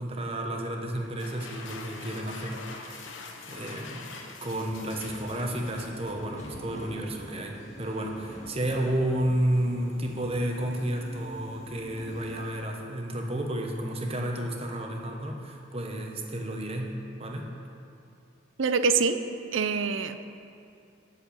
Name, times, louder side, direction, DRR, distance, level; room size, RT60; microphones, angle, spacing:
voice 1, 0.0-3.2 3.5-4.1 4.4-16.9 17.2-17.5, right 1 dB, 30° right, 1 dB, 1.0 m, -31 dB
sound 1, 1.0-6.6, left 3 dB, 70° left, 1.0 m, -44 dB
Subway metro underground, 4.7-12.6, equal, 35° left, 1.7 m, -47 dB
voice 2, 18.6-19.2 19.5-20.3, right 5 dB, 75° right, 10 dB, 0.6 m, -25 dB
8.5 x 6.9 x 8.3 m, 2.6 s
head